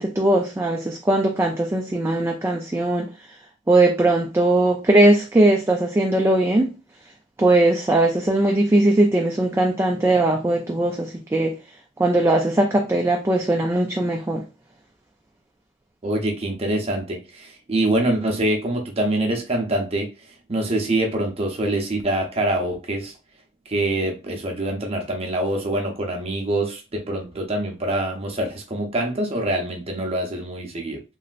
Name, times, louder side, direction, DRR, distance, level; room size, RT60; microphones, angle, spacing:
voice 1, 0.0-3.1 3.7-6.8 7.4-11.5 12.0-14.4, right 2 dB, 15° right, 0.4 m, -19 dB
voice 2, 16.0-20.1 20.5-23.1 23.7-31.0, right 1 dB, 30° right, 0.7 m, -25 dB
3.1 x 2.8 x 2.4 m
head